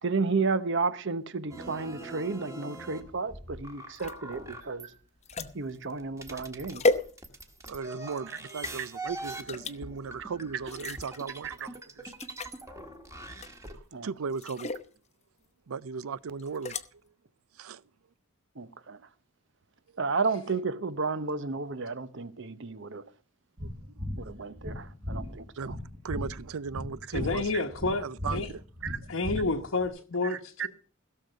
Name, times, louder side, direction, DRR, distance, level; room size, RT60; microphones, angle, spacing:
voice 1, 0.0-4.9 5.5-6.8 10.8-11.0 11.4-11.5 13.9-14.1 18.6-19.0 20.0-23.0 24.2-25.7 28.8-29.0 30.3-30.7, right 4 dB, 60° right, 0.9 m, -32 dB
sound 1, 1.5-4.9 5.4-13.7, right 1 dB, 15° right, 1.5 m, -43 dB
sound 2, 3.9-7.7 8.1-8.8 9.5-9.8 10.6-11.2 11.7-11.8 12.0-12.6 13.4-13.8 14.3-14.9 16.4-16.9, left 3 dB, 30° left, 0.8 m, -33 dB
voice 2, 7.6-12.1 13.7-14.7 15.7-17.0 17.5-17.8 23.6-23.7 25.6-25.7 26.0-27.5 28.0-28.6, right 5 dB, 80° right, 0.5 m, -37 dB
sound 3, 23.6-29.9, left 1 dB, 30° right, 2.0 m, -38 dB
voice 3, 27.1-28.0 28.3-28.5 29.1-30.7, left 3 dB, 75° left, 1.1 m, -29 dB
16.5 x 6.6 x 6.7 m
head